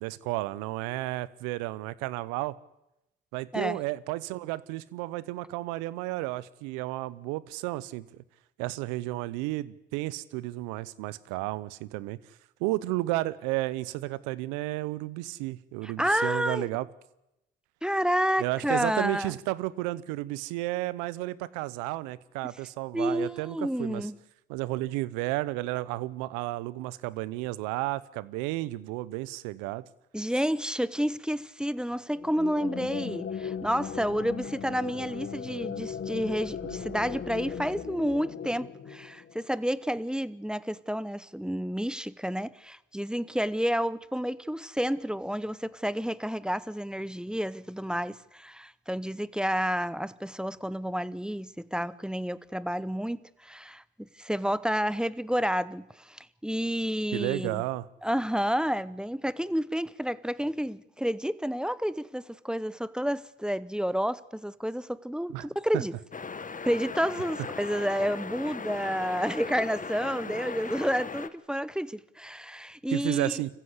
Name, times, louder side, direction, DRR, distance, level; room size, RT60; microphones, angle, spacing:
voice 1, 0.0-2.6 3.3-8.2 8.6-12.2 12.6-16.9 18.4-24.1 24.5-29.8 57.1-57.9 65.3-65.5 65.7-65.8 72.9-73.5, right 18 dB, 80° right, 0.9 m, -32 dB
voice 2, 15.8-16.7 17.8-19.3 22.9-24.2 30.1-57.6 58.0-65.9 66.6-73.4, equal, 5° right, 0.8 m, -30 dB
sound 1, 32.1-39.6, left 7 dB, 40° left, 1.5 m, -37 dB
sound 2, 66.1-71.3, left 5 dB, 25° left, 1.3 m, -38 dB
25.0 x 15.0 x 8.2 m
hypercardioid pair, 60°, 30 cm